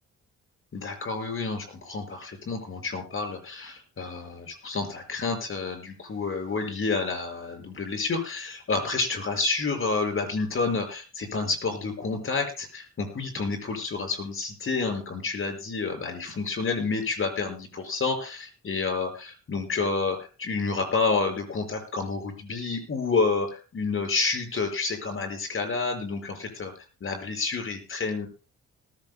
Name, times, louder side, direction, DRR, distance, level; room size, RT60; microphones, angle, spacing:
voice 1, 0.7-26.7 27.0-28.3, left 4 dB, 45° left, 5 dB, 5.7 m, -29 dB
19.5 x 15.5 x 2.2 m, 0.34 s
cardioid pair, 90°, 30 cm